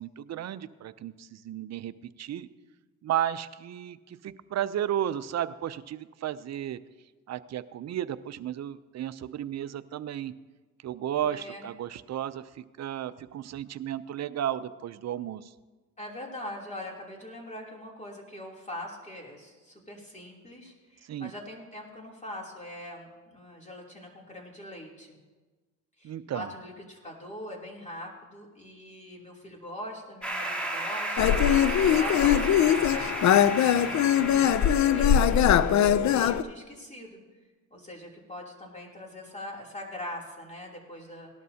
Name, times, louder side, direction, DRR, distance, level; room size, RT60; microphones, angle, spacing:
voice 1, 0.0-2.5 3.0-6.8 7.3-10.3 10.8-15.5 21.1-21.3 26.0-26.5, right 11 dB, 50° right, 15 dB, 0.6 m, -33 dB
voice 2, 11.2-11.6 14.5-14.6 16.0-25.2 26.0-33.1 33.7-37.2 37.7-41.3, left 1 dB, 20° left, -1 dB, 3.1 m, -42 dB
sound 1, 30.2-35.8, right 1 dB, 5° left, 2.6 m, -34 dB
sound 2, 31.2-36.4, left 9 dB, 55° left, 0.6 m, -21 dB
18.0 x 12.0 x 2.8 m, 1.3 s
cardioid pair, 85°, 34 cm